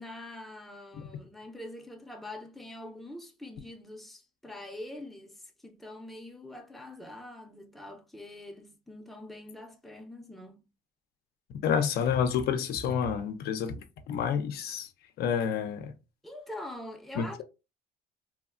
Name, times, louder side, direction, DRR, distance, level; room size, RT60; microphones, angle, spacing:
voice 1, 0.0-10.6 16.2-17.4, left 1 dB, ahead, 0.5 m, -44 dB
voice 2, 11.6-14.9 15.2-15.9 17.2-17.4, left 7 dB, 70° left, 0.5 m, -29 dB
3.0 x 2.1 x 2.4 m
cardioid pair, 110°, 17 cm